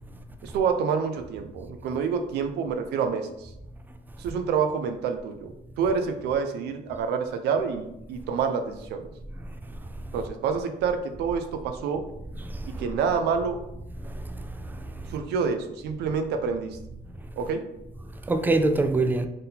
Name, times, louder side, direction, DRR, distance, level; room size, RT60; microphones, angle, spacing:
voice 1, 0.4-3.5 4.2-9.1 10.1-12.0 12.8-13.6 15.1-16.8 17.4-17.6, right 6 dB, 80° right, 0.5 m, -27 dB
voice 2, 12.4-12.8 14.0-15.1 18.3-19.3, right 2 dB, 10° right, 0.4 m, -26 dB
3.7 x 2.8 x 3.8 m
cardioid pair, 110°, 17 cm